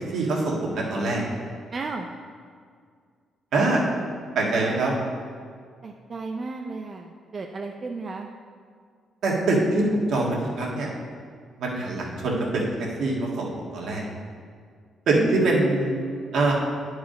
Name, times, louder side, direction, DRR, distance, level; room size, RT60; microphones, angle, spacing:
voice 1, 0.1-1.2 3.5-3.8 4.4-4.9 9.2-10.9 11.6-14.0 15.1-16.0 16.3-16.5, right 2 dB, 70° right, -2 dB, 1.8 m, -24 dB
voice 2, 1.7-2.1 5.8-8.3 15.2-16.5, right 3 dB, 40° right, 2 dB, 0.5 m, -34 dB
9.8 x 4.8 x 5.1 m, 2.1 s
cardioid pair, 90°, 0 cm